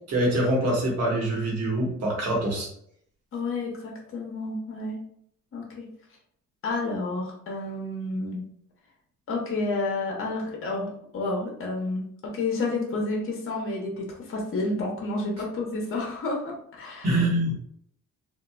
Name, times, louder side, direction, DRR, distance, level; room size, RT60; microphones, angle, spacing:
voice 1, 0.1-2.7 17.0-17.5, right 1 dB, 55° right, -2 dB, 1.3 m, -24 dB
voice 2, 3.3-5.0 5.5-5.9 6.6-8.4 9.3-17.2, left 2 dB, 45° left, -1 dB, 0.8 m, -30 dB
2.8 x 2.5 x 2.3 m, 0.68 s
cardioid pair, 90°, 30 cm